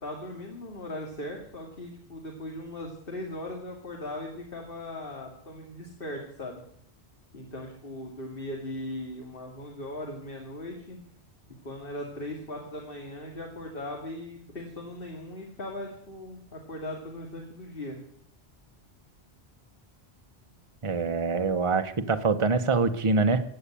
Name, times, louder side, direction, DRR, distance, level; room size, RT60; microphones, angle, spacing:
voice 1, 0.0-6.6 7.3-11.0 11.6-18.0, left 1 dB, 50° left, 1 dB, 2.5 m, -39 dB
voice 2, 20.8-23.4, right 4 dB, 30° right, 8 dB, 1.0 m, -24 dB
15.5 x 8.5 x 9.9 m, 0.66 s
omnidirectional pair, 1.2 m